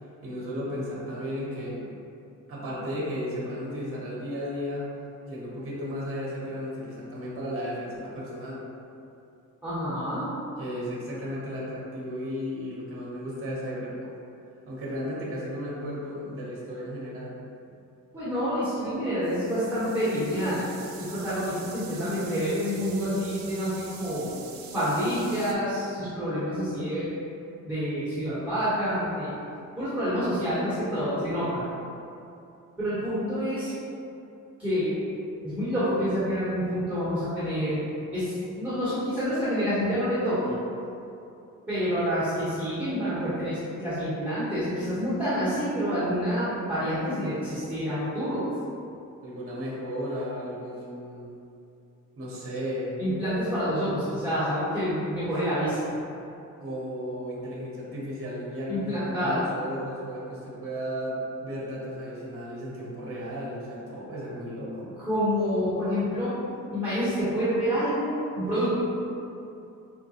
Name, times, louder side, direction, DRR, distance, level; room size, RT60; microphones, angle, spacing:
voice 1, 0.2-1.8 2.5-4.9 5.3-8.6 10.6-14.1 14.7-17.3 49.2-51.3 52.2-53.0 56.6-64.9, equal, 40° right, -6 dB, 0.9 m, -34 dB
voice 2, 9.6-10.3 18.1-20.6 21.0-24.3 24.7-27.1 27.6-29.3 29.8-31.6 32.8-33.7 34.6-35.0 35.4-37.8 38.1-40.6 41.7-48.4 53.0-56.0 58.7-59.4 65.0-66.3 66.7-68.7, equal, 5° right, -14 dB, 1.0 m, -28 dB
sound 1, 19.2-25.5, right 6 dB, 80° right, 0.5 m, -45 dB
4.8 x 2.2 x 2.7 m, 2.7 s
cardioid pair, 120°, 33 cm